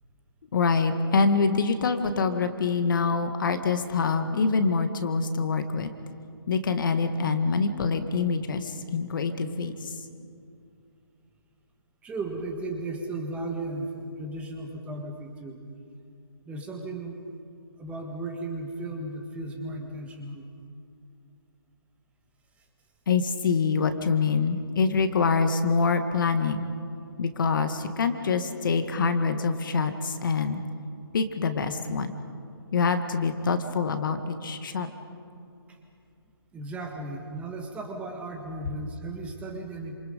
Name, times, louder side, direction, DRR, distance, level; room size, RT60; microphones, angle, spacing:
voice 1, 0.5-5.9 6.5-9.9 23.1-26.6 27.2-30.6 31.1-32.2 32.7-34.9, left 4 dB, 50° left, 8 dB, 1.8 m, -25 dB
voice 2, 12.0-15.6 16.4-17.2 17.8-20.4 35.7-35.8 36.5-39.9, right 2 dB, 10° right, 2 dB, 1.7 m, -35 dB
28.5 x 27.0 x 5.2 m, 2.4 s
hypercardioid pair, 150°, 13 cm